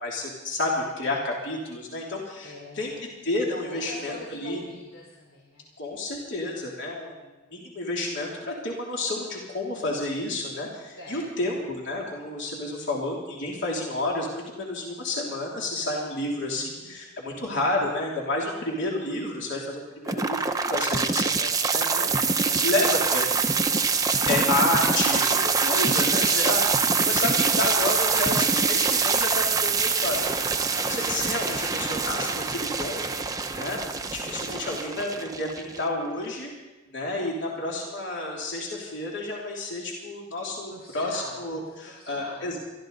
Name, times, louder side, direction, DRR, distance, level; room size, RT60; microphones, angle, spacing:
voice 1, 0.0-2.9 3.2-4.6 5.8-23.2 24.3-33.1 33.5-33.8 34.1-36.5 36.9-42.6, left 2 dB, 60° left, -3 dB, 3.0 m, -30 dB
voice 2, 2.4-3.0 3.7-5.7 11.0-11.3 16.2-17.0 22.4-22.7 24.2-24.5 33.9-34.5 40.7-42.4, left 2 dB, 85° left, -3 dB, 3.0 m, -44 dB
sound 1, 20.1-36.1, right 5 dB, 15° right, 0.7 m, -24 dB
22.5 x 14.0 x 4.0 m, 1.1 s
head